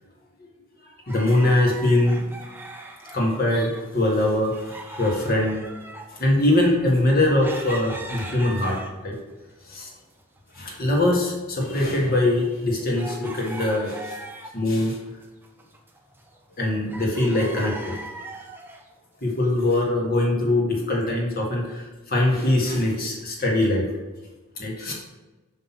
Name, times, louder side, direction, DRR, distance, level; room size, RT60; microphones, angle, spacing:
voice 1, 1.1-2.3 3.1-5.6 6.1-9.2 9.7-9.9 10.5-14.2 14.5-15.0 16.6-17.9 19.2-23.9 24.6-24.9, left 1 dB, 40° left, -1 dB, 1.6 m, -22 dB
sound 1, 1.1-3.9 4.1-9.2 9.7-10.6 10.8-10.9 11.5-14.7 15.1-16.6 16.9-18.9 19.5-19.6, right 2 dB, 10° right, 0.6 m, -40 dB
5.8 x 5.2 x 5.8 m, 1.2 s
head